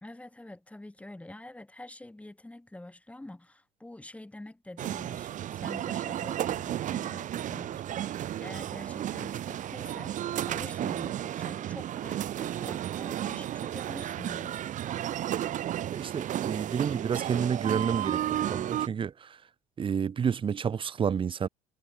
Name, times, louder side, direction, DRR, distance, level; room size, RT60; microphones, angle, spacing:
voice 1, 0.0-10.2 10.4-14.7, left 1 dB, 10° left, 3.9 m, -46 dB
sound 1, 4.8-18.9, right 11 dB, 50° right, 1.2 m, -33 dB
voice 2, 15.9-19.4 19.8-21.5, right 7 dB, 30° right, 1.1 m, -30 dB
cardioid pair, 105°, 17 cm